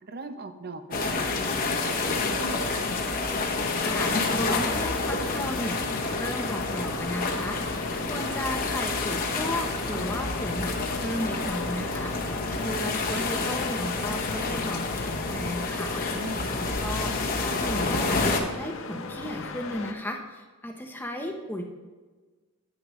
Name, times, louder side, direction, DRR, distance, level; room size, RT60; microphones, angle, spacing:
voice 1, 0.0-1.3 1.7-2.9 12.6-12.8 16.1-16.5, right 2 dB, 45° right, 9 dB, 0.6 m, -38 dB
sound 1, 0.9-18.4, left 3 dB, 40° left, 0.9 m, -29 dB
voice 2, 3.7-5.9 6.1-7.6 8.1-16.0 16.5-17.1 17.4-21.6, left 1 dB, 10° left, 3 dB, 0.7 m, -35 dB
sound 2, 4.2-19.9, left 4 dB, 60° left, 0.7 m, -39 dB
9.7 x 9.4 x 3.1 m, 1.4 s
head